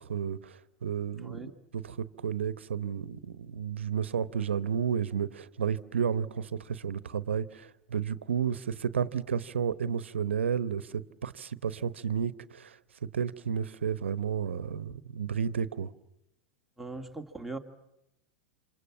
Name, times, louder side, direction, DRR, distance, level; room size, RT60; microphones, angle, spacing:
voice 1, 0.0-12.8 13.1-15.9, right 7 dB, 85° right, 1.0 m, -32 dB
voice 2, 1.2-1.5 16.8-17.6, right 2 dB, ahead, 2.2 m, -40 dB
28.0 x 27.0 x 7.4 m
hypercardioid pair, 100°, 6 cm